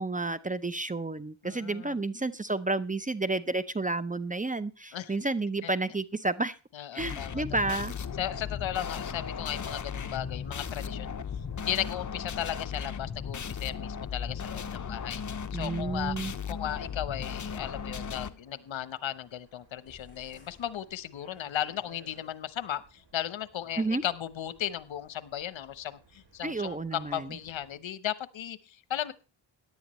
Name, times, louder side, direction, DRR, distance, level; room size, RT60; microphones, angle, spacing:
voice 1, 0.0-6.6 6.9-7.9 15.5-16.3 23.8-24.0 26.4-27.3, right 2 dB, 15° right, 16 dB, 0.6 m, -31 dB
voice 2, 1.4-2.0 4.9-5.1 5.6-5.7 6.7-7.4 8.2-11.1 11.6-16.2 16.5-29.1, left 11 dB, 70° left, 15 dB, 1.1 m, -36 dB
sound 1, 7.0-18.3, left 6 dB, 40° left, 1.0 m, -36 dB
sound 2, 7.7-27.7, right 3 dB, 65° right, 5.7 m, -62 dB
sound 3, 19.9-21.7, left 5 dB, 25° left, 3.4 m, -57 dB
17.5 x 11.0 x 3.1 m, 0.31 s
cardioid pair, 80°, 48 cm